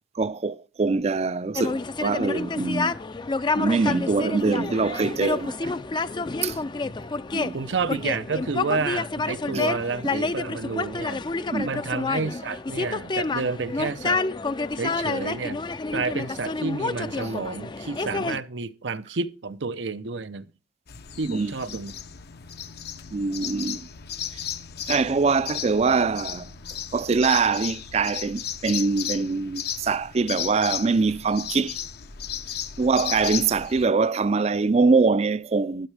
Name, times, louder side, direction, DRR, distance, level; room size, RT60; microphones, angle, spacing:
voice 1, 0.1-2.9 3.5-5.7 6.4-6.6 7.3-7.6 9.5-9.7 10.0-10.1 11.5-11.8 21.2-21.5 23.1-23.9 24.8-26.5 26.9-31.8 32.8-35.9, right 4 dB, 35° right, 0.4 m, -23 dB
sound 1, 1.6-18.4, left 3 dB, 25° left, 0.4 m, -29 dB
voice 2, 7.5-11.2 11.6-14.2 14.8-15.6 15.9-20.5 21.2-21.9, right 4 dB, 85° right, 0.7 m, -30 dB
sound 2, 20.9-33.9, left 9 dB, 60° left, 0.8 m, -35 dB
12.0 x 10.5 x 3.4 m
head